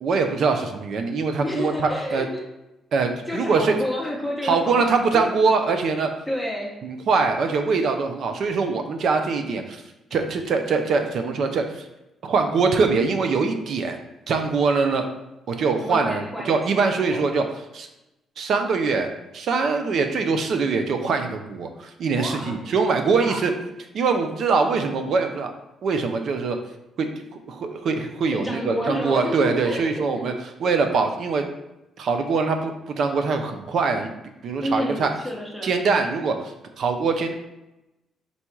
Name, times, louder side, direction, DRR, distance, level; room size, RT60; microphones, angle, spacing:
voice 1, 0.0-2.2 2.9-3.8 4.4-6.1 6.8-9.8 10.1-11.9 12.2-14.0 14.3-15.1 15.5-17.4 17.7-17.9 18.4-23.5 23.9-25.5 25.8-26.6 27.0-30.3 30.6-31.4 32.0-34.1 34.4-35.1 35.6-37.3, right 4 dB, 65° right, 6 dB, 0.5 m, -23 dB
voice 2, 1.4-2.4 3.3-5.3 6.3-6.7 15.8-17.2 22.1-22.7 23.1-23.4 28.3-30.4 34.6-35.7, left 1 dB, ahead, -2 dB, 0.8 m, -30 dB
4.1 x 2.3 x 4.4 m, 0.95 s
cardioid pair, 90°, 0 cm